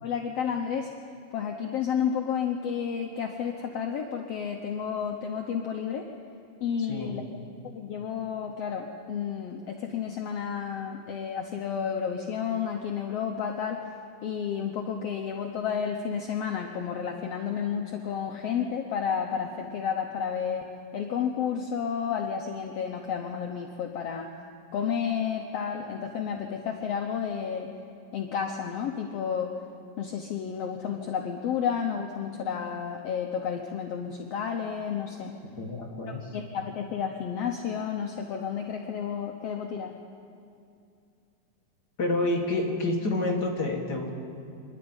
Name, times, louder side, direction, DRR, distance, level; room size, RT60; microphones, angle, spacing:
voice 1, 0.0-0.9 1.3-6.1 6.6-7.2 7.7-13.8 14.2-24.3 24.7-27.7 28.1-29.5 30.0-35.3 36.3-39.9, left 7 dB, 75° left, 2 dB, 1.4 m, -31 dB
voice 2, 6.8-7.2 35.6-36.3 42.0-44.1, left 2 dB, 40° left, 0 dB, 1.7 m, -28 dB
25.5 x 11.5 x 8.9 m, 2.5 s
omnidirectional pair, 4.1 m